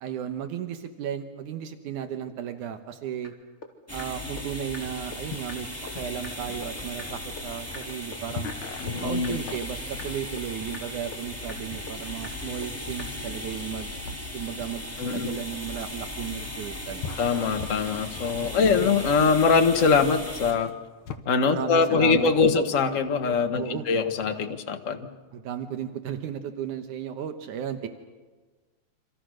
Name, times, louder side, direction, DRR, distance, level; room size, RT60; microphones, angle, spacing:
voice 1, 0.0-3.3 3.9-5.7 5.9-8.5 9.0-13.9 14.3-17.1 18.5-19.0 21.5-22.3 22.5-22.6 23.6-23.9 25.3-27.9, right 9 dB, 80° right, 7 dB, 2.6 m, -34 dB
sound 1, 3.2-3.3 3.6-3.7 4.0-4.1 4.4-4.5 4.7-4.8 5.1-5.2 5.5-5.6 5.9-6.0 6.2-6.3 6.6-6.7 7.0-7.1 7.4-7.5 7.7-7.8 8.1-8.2 8.5-8.6 8.9-9.0 9.2-9.3 9.6-9.7 10.0-10.1 10.4-10.5 10.7-10.8 11.1-11.2 11.5-11.6 11.9-12.0 12.2-12.3 12.6-12.7 13.0-13.1, left 3 dB, 25° left, 3.0 m, -40 dB
sound 2, 3.9-20.5, left 1 dB, 5° left, 2.6 m, -37 dB
sound 3, 4.8-21.2, left 6 dB, 70° left, 2.6 m, -42 dB
voice 2, 8.8-9.4 15.0-15.3 17.2-20.7 21.2-25.0, left 5 dB, 40° left, 6 dB, 1.1 m, -23 dB
28.0 x 26.5 x 6.4 m, 1.3 s
omnidirectional pair, 3.5 m